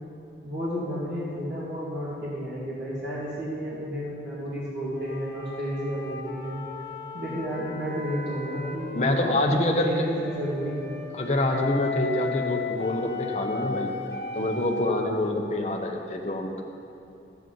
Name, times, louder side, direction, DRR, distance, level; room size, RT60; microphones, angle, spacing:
voice 1, 0.4-6.6 7.1-11.0, equal, 85° right, -8 dB, 1.9 m, -32 dB
sound 1, 4.9-9.5 10.2-15.0, left 4 dB, 65° left, 1.0 m, -36 dB
voice 2, 9.0-10.1 11.1-13.9 14.3-16.6, left 1 dB, 40° left, 2 dB, 0.8 m, -26 dB
12.0 x 9.1 x 3.8 m, 2.6 s
head